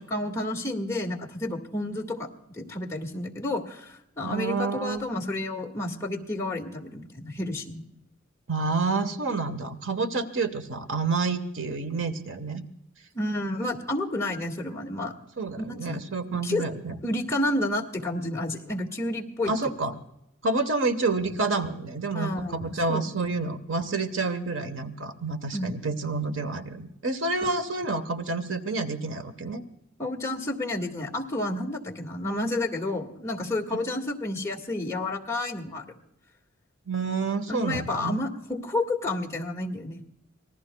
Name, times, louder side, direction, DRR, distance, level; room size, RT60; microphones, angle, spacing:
voice 1, 0.0-7.9 13.1-15.1 15.6-16.0 16.4-16.7 17.0-19.5 22.1-23.1 25.5-25.7 27.4-27.5 30.0-35.9 37.5-40.1, left 1 dB, 15° left, -1 dB, 1.8 m, -30 dB
voice 2, 4.2-5.1 8.5-12.6 15.4-17.0 19.5-19.9 20.4-29.6 33.7-33.8 36.9-38.2, right 3 dB, 80° right, 8 dB, 1.2 m, -29 dB
26.5 x 20.0 x 2.3 m, 0.79 s
head